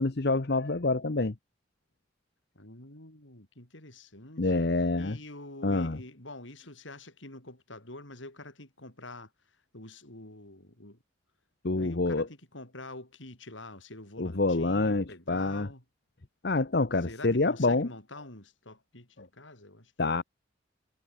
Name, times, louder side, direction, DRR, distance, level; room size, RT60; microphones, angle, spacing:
voice 1, 0.0-1.3 4.4-5.2 5.6-6.0 11.6-12.3 14.2-15.7 16.4-17.9 20.0-20.2, left 3 dB, 55° left, 1.0 m, -27 dB
voice 2, 2.6-4.7 5.0-9.3 9.7-11.0 11.8-15.8 17.0-20.2, left 2 dB, 80° left, 7.1 m, -46 dB
head